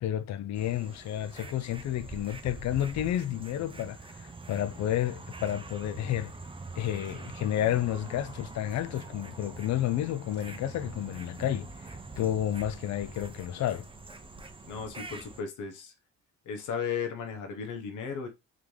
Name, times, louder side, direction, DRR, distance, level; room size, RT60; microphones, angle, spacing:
voice 1, 0.0-6.3 6.8-13.9, left 11 dB, 65° left, 0.5 m, -31 dB
sound 1, 0.6-15.4, right 3 dB, 15° right, 0.7 m, -44 dB
sound 2, 5.0-12.4, right 5 dB, 35° right, 1.1 m, -53 dB
voice 2, 14.7-15.9 16.5-18.3, left 6 dB, 85° left, 1.2 m, -35 dB
3.6 x 3.6 x 3.2 m
cardioid pair, 90°, 30 cm